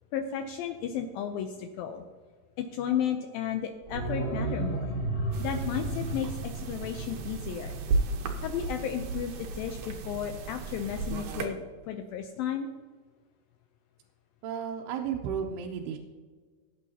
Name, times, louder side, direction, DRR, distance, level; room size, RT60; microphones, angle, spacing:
voice 1, 0.1-2.0 2.6-4.9 5.4-7.8 8.4-12.7, left 8 dB, 80° left, 5 dB, 2.2 m, -33 dB
sound 1, 3.8-8.6 8.9-9.0, right 2 dB, 20° left, 2.6 m, -34 dB
sound 2, 5.3-11.5, right 3 dB, 70° right, 2.1 m, -34 dB
voice 2, 14.4-16.0, right 7 dB, 90° right, 0 dB, 2.8 m, -33 dB
19.0 x 8.5 x 2.8 m, 1.5 s
omnidirectional pair, 4.6 m